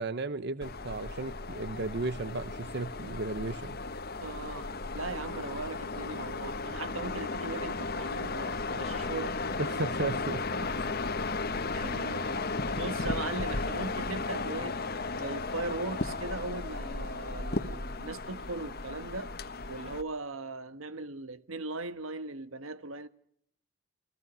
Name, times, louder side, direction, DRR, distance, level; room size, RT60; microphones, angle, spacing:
voice 1, 0.0-3.8 9.6-10.4, right 3 dB, 55° right, 0.9 m, -34 dB
sound 1, 0.6-20.0, left 3 dB, 50° left, 1.4 m, -35 dB
voice 2, 4.2-9.6 11.7-12.5 12.7-14.8 15.1-19.3 19.7-23.1, right 3 dB, 80° right, 1.3 m, -39 dB
30.0 x 21.5 x 6.2 m
head